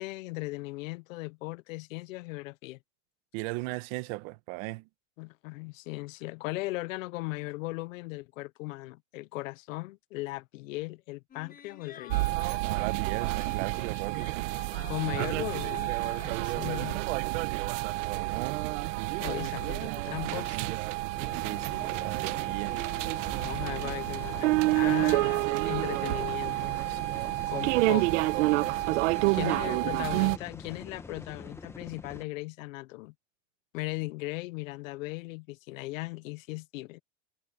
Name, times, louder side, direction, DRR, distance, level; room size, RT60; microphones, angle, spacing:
voice 1, 0.0-2.8 5.2-12.4 14.9-17.0 19.2-20.8 23.4-26.8 27.5-28.1 29.3-33.1 33.7-37.0, left 22 dB, 75° left, 0.8 m, -38 dB
voice 2, 3.3-4.9 12.6-14.4 17.8-18.6 21.3-22.8 29.3-29.7 30.0-30.2, right 22 dB, 50° right, 1.4 m, -38 dB
sound 1, 11.3-16.9 17.3-17.4, left 8 dB, 20° left, 6.9 m, -51 dB
sound 2, 12.1-30.4, right 20 dB, 65° right, 1.0 m, -29 dB
sound 3, 21.1-32.2, left 3 dB, 5° left, 1.1 m, -46 dB
supercardioid pair, 155°, 40 cm